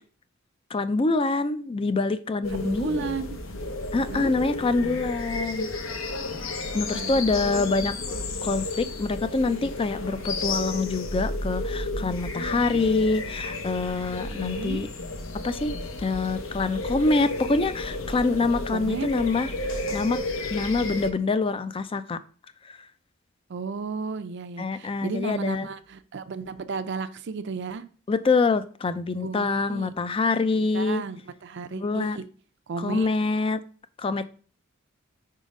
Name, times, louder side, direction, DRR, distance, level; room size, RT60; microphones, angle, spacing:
voice 1, 0.7-3.0 3.9-5.7 6.7-7.9 8.4-14.9 15.4-19.5 19.9-20.2 20.5-22.2 22.7-22.8 24.6-25.7 28.1-31.0 31.7-32.2 32.8-33.6 34.0-34.3, left 3 dB, 25° left, 13 dB, 0.4 m, -25 dB
sound 1, 2.4-21.1, left 2 dB, 70° left, 0.8 m, -32 dB
voice 2, 2.5-3.3 4.0-4.3 6.9-8.1 10.1-10.5 12.5-12.8 14.3-14.9 18.7-19.1 23.5-27.8 29.2-29.9 30.5-32.2 32.7-33.1, right 4 dB, 60° right, 11 dB, 0.5 m, -34 dB
5.0 x 3.8 x 5.2 m, 0.41 s
head